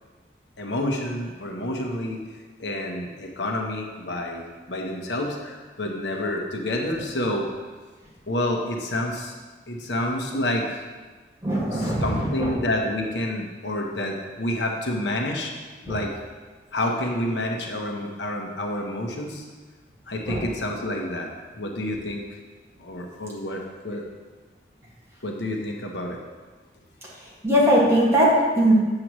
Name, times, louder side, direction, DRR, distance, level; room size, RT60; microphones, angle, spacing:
voice 1, 0.6-2.2 2.6-7.5 8.3-9.3 9.7-10.8 11.7-15.5 15.8-16.1 16.7-19.4 20.1-21.3 21.6-22.2 22.8-24.0 25.2-26.2, left 1 dB, 80° left, 1 dB, 1.0 m, -28 dB
voice 2, 11.4-12.5 20.3-20.4 27.4-28.7, equal, 15° right, -6 dB, 1.9 m, -20 dB
7.7 x 7.5 x 3.1 m, 1.3 s
head